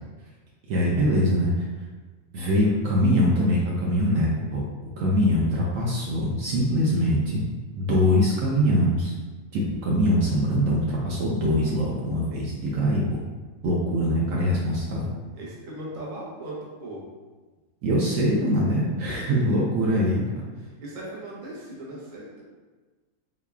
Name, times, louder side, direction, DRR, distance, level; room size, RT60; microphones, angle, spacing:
voice 1, 0.7-1.6 2.3-4.6 5.0-7.4 7.8-9.1 9.5-13.2 13.6-15.1 17.8-20.2, equal, 70° right, -4 dB, 0.9 m, -23 dB
voice 2, 15.3-17.0 20.1-20.2 20.6-22.4, right 1 dB, 40° right, -5 dB, 0.8 m, -38 dB
3.6 x 3.1 x 2.3 m, 1.3 s
omnidirectional pair, 1.5 m